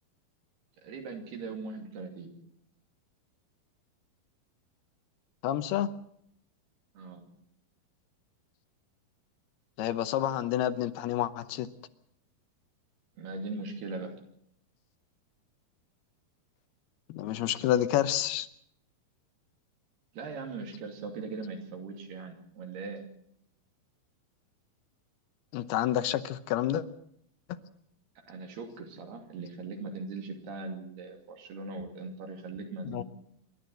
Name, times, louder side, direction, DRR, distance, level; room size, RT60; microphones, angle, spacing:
voice 1, 0.8-2.3 7.0-7.3 13.2-14.2 20.1-23.0 28.3-33.0, right 3 dB, 75° right, 4 dB, 4.7 m, -40 dB
voice 2, 5.4-5.9 9.8-11.7 17.1-18.5 25.5-26.8 32.9-33.0, left 12 dB, 80° left, 12 dB, 2.8 m, -29 dB
27.5 x 12.5 x 7.7 m, 0.71 s
omnidirectional pair, 4.6 m